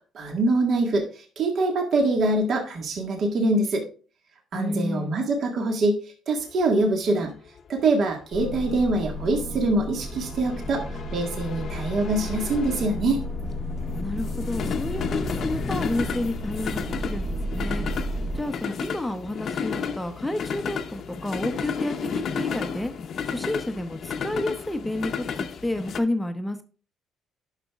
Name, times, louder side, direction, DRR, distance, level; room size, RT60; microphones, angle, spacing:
voice 1, 0.1-3.9 4.5-6.0 6.3-7.3 7.7-13.2, right 2 dB, 55° right, 2 dB, 1.7 m, -24 dB
voice 2, 4.5-5.1 14.0-17.9 18.3-22.9 23.3-26.6, left 1 dB, 5° left, 7 dB, 0.8 m, -30 dB
sound 1, 6.5-26.0, left 6 dB, 50° left, 0.8 m, -33 dB
sound 2, 8.3-18.7, left 1 dB, 35° right, 1.5 m, -33 dB
11.0 x 6.1 x 2.4 m, 0.38 s
cardioid pair, 125°, 0 cm